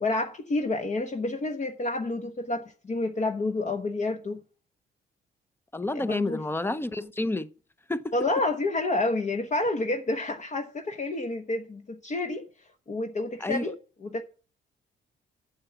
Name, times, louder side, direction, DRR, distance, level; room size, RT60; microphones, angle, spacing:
voice 1, 0.0-4.4 5.9-6.4 8.1-12.5 12.9-14.2, left 2 dB, 35° left, 1.1 m, -29 dB
voice 2, 5.7-7.5 7.9-8.0 13.4-13.6, left 2 dB, 10° left, 0.7 m, -29 dB
8.6 x 7.3 x 6.9 m
cardioid pair, 90°, 20 cm